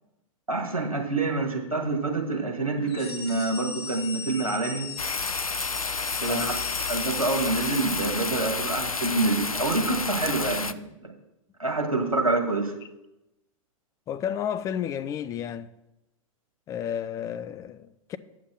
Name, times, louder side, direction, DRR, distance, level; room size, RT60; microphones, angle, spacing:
voice 1, 0.5-4.9 6.2-6.5 6.9-11.1 11.6-12.7, right 3 dB, 85° right, 1.9 m, -27 dB
sound 1, 2.8-8.5, left 5 dB, 50° left, 2.1 m, -39 dB
sound 2, 5.0-10.7, left 4 dB, 90° left, 0.5 m, -30 dB
voice 2, 6.3-6.6 14.1-15.7 16.7-18.2, left 9 dB, 20° left, 0.4 m, -32 dB
8.3 x 7.2 x 6.2 m
figure-of-eight pair, 100°, 18 cm